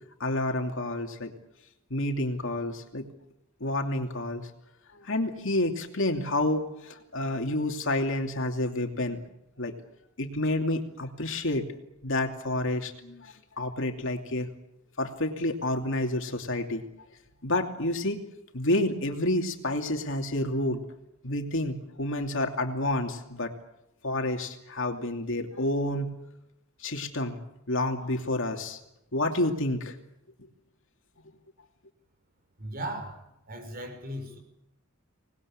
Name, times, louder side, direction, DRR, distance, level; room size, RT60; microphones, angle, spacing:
voice 1, 0.2-1.3 1.9-3.1 3.6-4.5 4.9-9.2 9.6-9.7 10.2-11.7 12.0-14.5 15.0-16.8 17.4-18.2 18.5-20.8 21.2-23.5 24.0-26.1 26.8-27.4 27.7-28.8 29.1-30.0, left 1 dB, 60° left, 4 dB, 2.8 m, -29 dB
voice 2, 32.6-33.2 33.5-34.4, right 1 dB, 45° right, 6 dB, 5.8 m, -37 dB
25.5 x 20.0 x 8.8 m, 0.86 s
head